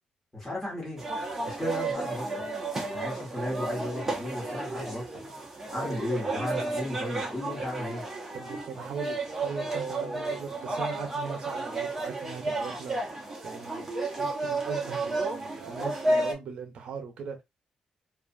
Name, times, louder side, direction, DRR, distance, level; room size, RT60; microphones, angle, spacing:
voice 1, 0.3-1.0 1.4-2.3 2.9-5.2 5.7-8.0, left 1 dB, 10° left, 1.2 m, -34 dB
sound 1, 1.0-16.3, right 2 dB, 15° right, 0.7 m, -32 dB
voice 2, 8.3-13.0 13.4-13.9 14.2-17.4, right 6 dB, 60° right, 0.8 m, -39 dB
2.7 x 2.4 x 2.5 m
cardioid pair, 180°, 2 cm